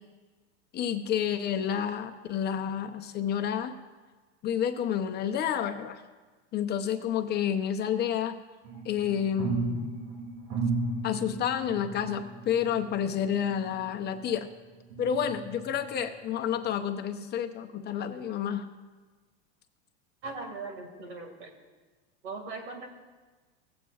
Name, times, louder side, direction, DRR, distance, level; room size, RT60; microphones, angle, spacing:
voice 1, 0.7-3.7 4.4-6.0 6.5-8.4 8.8-9.9 11.0-14.5 15.0-18.7, left 9 dB, 30° left, 6 dB, 0.7 m, -30 dB
sound 1, 8.6-14.4 14.9-16.0 16.5-16.6, right 3 dB, 70° right, 2.2 m, -35 dB
voice 2, 20.2-21.5 22.2-22.9, right 3 dB, 85° right, 4 dB, 2.1 m, -39 dB
17.5 x 8.2 x 2.4 m, 1.3 s
supercardioid pair, 120°, 33 cm